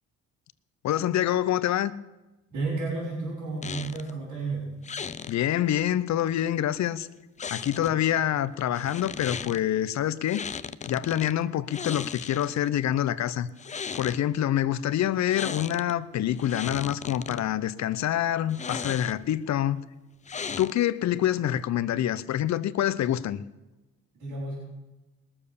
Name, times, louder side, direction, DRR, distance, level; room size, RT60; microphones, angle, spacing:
voice 1, 0.8-1.9 5.3-7.1 7.5-10.4 10.9-13.5 13.9-19.8 20.6-23.4, left 11 dB, 65° left, 0.7 m, -26 dB
voice 2, 2.5-4.6 7.6-8.1 24.2-24.6, right 3 dB, 80° right, 5.2 m, -32 dB
sound 1, 3.6-4.1 4.8-5.4 7.4-8.1 8.7-9.6 10.3-11.3 11.7-12.7 13.5-14.2 15.3-15.9 16.3-17.4 18.5-19.3 20.3-21.0, left 6 dB, 25° left, 0.5 m, -36 dB
20.0 x 7.1 x 6.8 m
cardioid pair, 90°, 30 cm